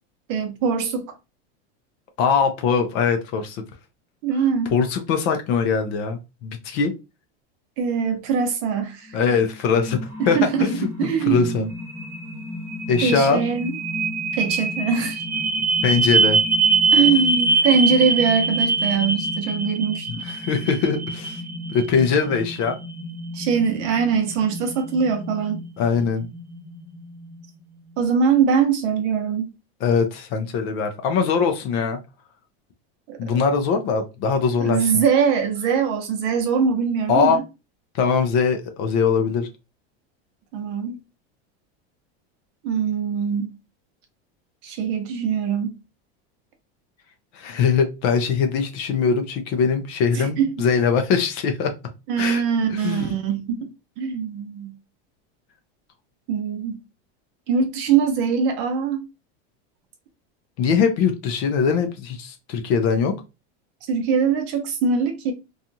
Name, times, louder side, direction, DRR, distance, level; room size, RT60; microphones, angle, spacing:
voice 1, 0.3-1.2 4.2-4.8 7.8-9.2 10.3-10.7 11.0-11.7 13.0-13.7 14.3-15.2 16.9-20.1 23.3-25.7 28.0-29.5 33.1-33.4 34.6-37.4 40.5-41.0 42.6-43.5 44.6-45.8 50.1-50.7 52.1-53.7 54.0-54.8 56.3-56.8 57.5-59.0 63.9-65.3, right 6 dB, 45° right, 0.7 m, -22 dB
voice 2, 2.2-3.6 4.7-6.9 9.1-10.0 10.3-10.9 11.3-11.6 12.9-13.4 15.8-16.4 20.2-21.4 21.7-22.8 25.8-26.3 29.8-32.0 33.2-35.0 37.1-37.4 37.9-39.5 47.3-51.7 52.2-52.4 52.7-53.1 60.6-63.2, left 5 dB, 35° left, 0.4 m, -21 dB
sound 1, 9.3-27.4, right 3 dB, 10° right, 0.8 m, -25 dB
2.7 x 2.3 x 2.6 m
supercardioid pair, 160°, 31 cm